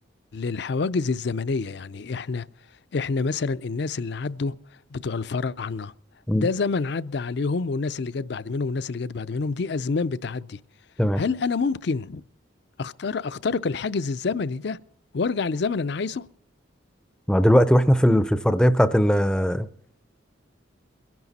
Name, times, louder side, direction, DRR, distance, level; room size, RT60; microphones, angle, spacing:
voice 1, 0.3-2.5 2.9-4.6 4.9-5.9 6.3-10.6 11.2-12.2 12.8-14.8 15.1-16.2, left 4 dB, 60° left, 0.5 m, -27 dB
voice 2, 17.3-19.7, equal, 5° left, 0.5 m, -19 dB
22.5 x 11.0 x 4.1 m
head